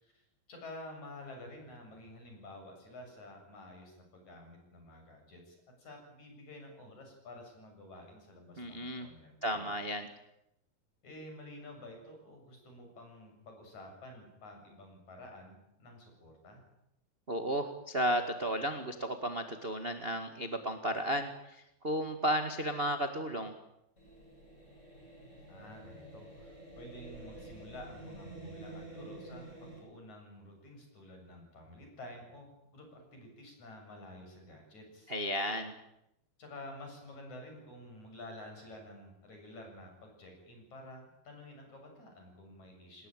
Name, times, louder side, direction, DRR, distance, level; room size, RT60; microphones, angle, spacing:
voice 1, 0.0-9.7 11.0-16.6 25.5-35.1 36.4-43.1, left 1 dB, 50° left, 3 dB, 8.8 m, -50 dB
voice 2, 8.6-9.1 9.4-10.1 17.3-23.5 35.1-35.7, equal, 35° right, 6 dB, 0.9 m, -33 dB
sound 1, 24.0-29.8, right 2 dB, 15° left, 8.1 m, -49 dB
28.0 x 20.0 x 9.2 m, 0.84 s
omnidirectional pair, 4.4 m